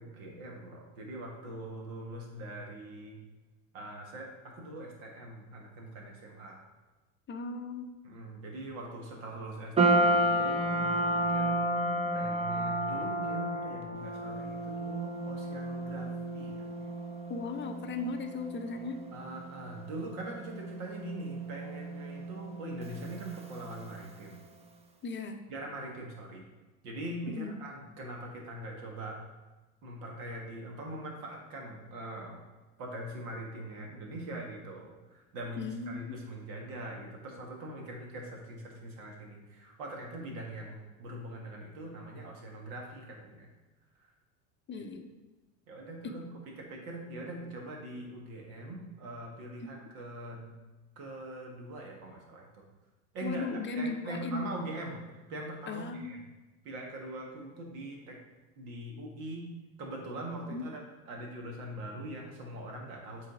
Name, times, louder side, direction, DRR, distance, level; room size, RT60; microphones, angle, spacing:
voice 1, 0.0-3.2 3.7-6.6 8.0-16.6 19.1-24.4 25.5-26.5 26.8-29.2 29.8-32.4 32.8-43.5 44.7-44.9 45.7-50.5 51.0-52.6 53.1-53.5 53.7-55.0 55.3-56.2 56.6-58.2 58.6-59.5 59.8-60.8 61.1-63.3, right 1 dB, 65° right, 0 dB, 1.8 m, -42 dB
voice 2, 7.3-7.9 17.3-19.0 25.0-25.4 27.3-27.5 35.6-36.2 44.7-45.1 46.0-46.1 49.6-49.7 53.2-54.5 55.7-56.2 60.5-60.6, left 3 dB, 25° left, 6 dB, 0.7 m, -37 dB
sound 1, 9.8-24.2, right 1 dB, 15° right, 0.7 m, -32 dB
7.3 x 4.1 x 3.9 m, 1.1 s
hypercardioid pair, 85°, 44 cm